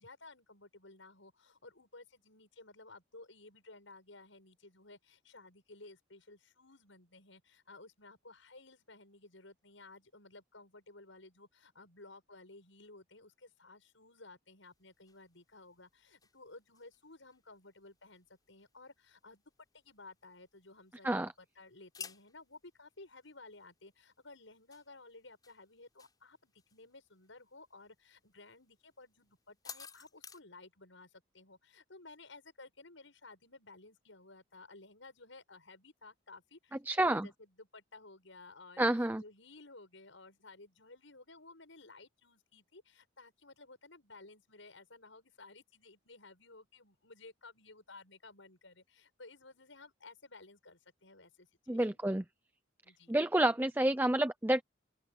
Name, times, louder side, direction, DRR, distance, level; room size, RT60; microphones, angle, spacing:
voice 1, 0.0-19.4 19.7-36.8 37.0-52.1 52.8-53.2, left 3 dB, 80° left, 6.8 m, -56 dB
sound 1, 14.6-30.4, left 6 dB, 20° left, 6.6 m, -57 dB
voice 2, 36.9-37.3 38.8-39.2 51.7-52.2 53.1-54.6, right 1 dB, 10° right, 0.5 m, -29 dB
open air
head